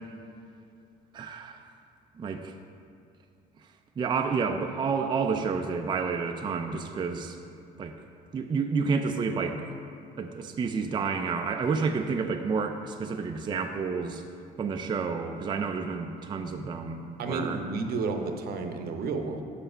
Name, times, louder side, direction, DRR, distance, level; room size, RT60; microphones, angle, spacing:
voice 1, 1.1-1.6 2.2-2.5 4.0-7.4 7.8-7.9 8.3-9.6 10.2-14.2 14.6-17.6, right 5 dB, 25° right, 5 dB, 0.4 m, -30 dB
voice 2, 17.2-19.4, right 4 dB, 65° right, 5 dB, 0.7 m, -31 dB
5.9 x 5.5 x 5.5 m, 2.5 s
cardioid pair, 110°, 17 cm